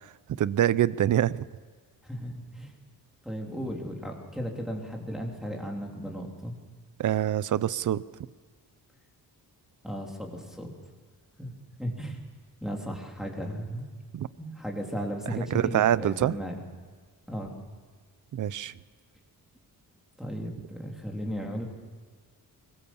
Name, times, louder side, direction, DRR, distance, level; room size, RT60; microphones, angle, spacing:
voice 1, 0.4-1.4 7.0-8.0 14.1-14.3 15.3-16.4 18.3-18.7, right 11 dB, 55° right, 18 dB, 0.7 m, -25 dB
voice 2, 2.0-2.7 3.2-6.5 9.8-10.7 11.4-11.5 11.8-12.2 12.6-13.9 14.4-16.5 17.3-17.5 20.2-21.7, equal, ahead, -1 dB, 3.2 m, -35 dB
23.5 x 20.5 x 7.2 m, 1.5 s
wide cardioid pair, 150°, 37 cm